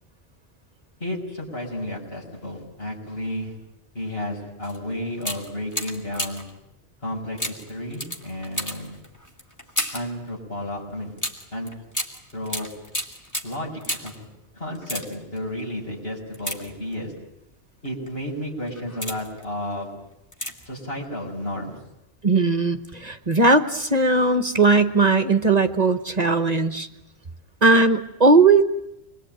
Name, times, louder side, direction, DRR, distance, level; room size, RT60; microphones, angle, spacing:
voice 1, 1.0-3.6 3.9-6.5 7.0-9.0 9.9-11.1 11.5-11.7 12.3-12.7 13.4-14.3 14.5-17.1 17.8-19.9 20.6-21.8, left 1 dB, 65° left, -1 dB, 6.6 m, -32 dB
sound 1, 4.6-4.8 5.2-6.6 7.4-10.2 11.2-14.2 14.7-15.4 16.3-17.2 17.8-18.1 18.6-19.4 20.3-20.8 21.0-21.1, equal, 15° left, 2.7 m, -32 dB
voice 2, 22.2-26.9 27.6-28.6, right 3 dB, 40° right, 9 dB, 1.2 m, -18 dB
27.0 x 22.5 x 9.2 m, 0.86 s
omnidirectional pair, 1.1 m